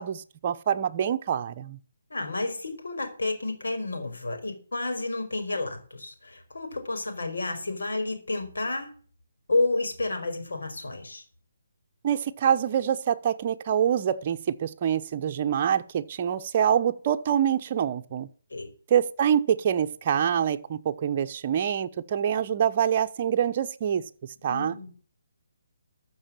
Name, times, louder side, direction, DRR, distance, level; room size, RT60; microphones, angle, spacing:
voice 1, 0.0-1.8 12.0-18.3 18.9-24.0 24.4-24.8, right 9 dB, 35° right, 1.0 m, -25 dB
voice 2, 2.1-8.9 9.5-11.2 18.5-18.7 24.4-24.9, left 2 dB, 85° left, 5.0 m, -30 dB
14.0 x 6.4 x 7.6 m
hypercardioid pair, 165°, 0 cm